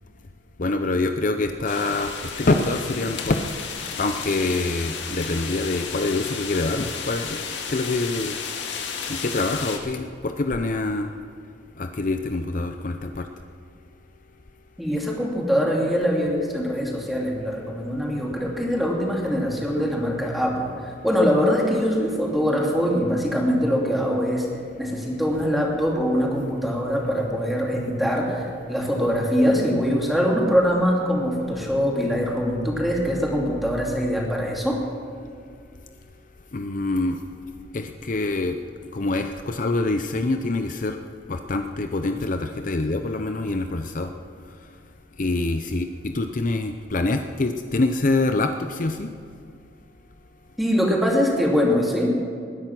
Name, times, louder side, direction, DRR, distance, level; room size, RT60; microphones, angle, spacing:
voice 1, 0.6-2.1 2.4-3.4 4.0-7.4 7.7-8.4 9.1-11.1 11.8-13.3 36.5-37.2 37.7-38.6 38.9-41.0 41.3-44.1 45.2-49.1, left 2 dB, 45° left, 6 dB, 0.7 m, -25 dB
sound 1, 1.7-9.8, left 6 dB, 75° left, 1.9 m, -33 dB
voice 2, 14.8-24.5 24.8-34.8 50.6-52.1, equal, ahead, -2 dB, 2.7 m, -23 dB
20.0 x 11.0 x 6.0 m, 2.3 s
head